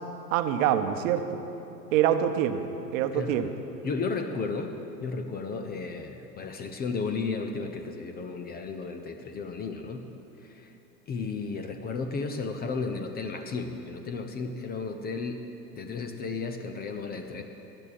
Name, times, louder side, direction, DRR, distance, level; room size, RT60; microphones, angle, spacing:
voice 1, 0.3-1.4 1.9-2.6 2.9-3.5, right 10 dB, 50° right, 9 dB, 0.9 m, -25 dB
voice 2, 3.1-3.5 3.8-4.7 5.0-10.0 10.4-10.7 11.1-15.4 15.7-17.4, left 4 dB, 20° left, 7 dB, 0.6 m, -33 dB
19.5 x 11.0 x 4.2 m, 2.9 s
hypercardioid pair, 100°, 50 cm